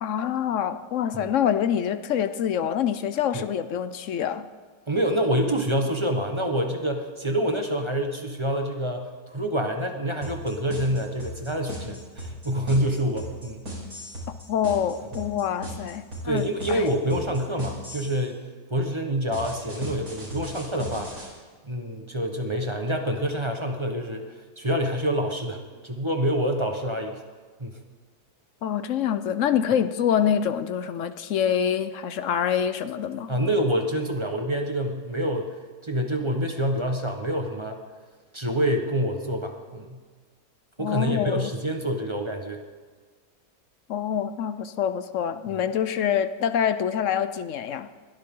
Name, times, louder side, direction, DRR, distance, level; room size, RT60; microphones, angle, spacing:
voice 1, 0.0-4.5 14.5-16.9 28.6-33.3 40.8-41.5 43.9-47.9, left 8 dB, 60° left, 12 dB, 0.9 m, -26 dB
voice 2, 4.9-13.7 16.2-18.4 18.7-21.3 21.6-27.2 27.6-27.8 33.3-35.5 35.8-37.8 38.3-40.0 40.8-42.6 45.5-45.6, equal, 20° right, 3 dB, 1.1 m, -27 dB
sound 1, 10.2-18.2 19.3-21.3, equal, 65° right, 5.4 m, -36 dB
21.5 x 13.0 x 3.8 m, 1.5 s
omnidirectional pair, 1.7 m